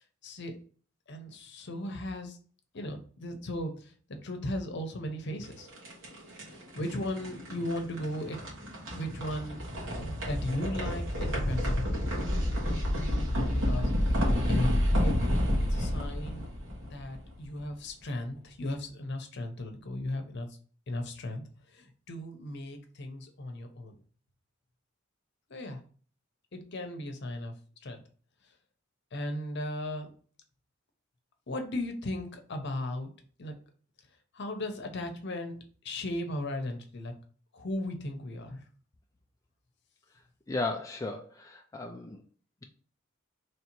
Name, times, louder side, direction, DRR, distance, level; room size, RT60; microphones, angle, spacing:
voice 1, 0.2-0.6 1.1-2.4 2.7-5.7 6.5-8.4 8.9-9.6 9.9-12.1 13.5-13.9 14.5-14.7 15.0-15.2 15.7-16.5 16.8-20.5 20.9-21.4 21.7-24.0 25.5-25.8 26.5-27.5 27.8-28.0 29.1-30.1 31.5-33.1 33.4-33.5 34.3-35.6 35.8-37.1 37.5-38.6, left 1 dB, 60° left, 5 dB, 0.8 m, -36 dB
sound 1, 5.4-17.5, equal, 75° right, 1.5 m, -30 dB
voice 2, 40.5-42.2, left 2 dB, 15° left, 3 dB, 0.3 m, -35 dB
3.2 x 2.8 x 4.4 m, 0.42 s
head